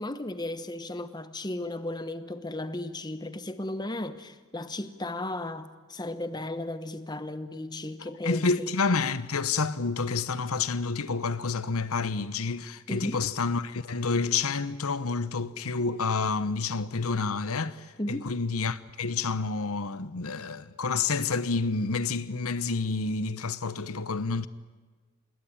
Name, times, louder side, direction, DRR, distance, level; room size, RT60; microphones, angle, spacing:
voice 1, 0.0-8.7 12.9-13.2 18.0-18.3, left 1 dB, 20° left, 1.0 m, -35 dB
voice 2, 8.2-24.5, left 4 dB, 80° left, 1.0 m, -29 dB
27.0 x 20.5 x 9.0 m
head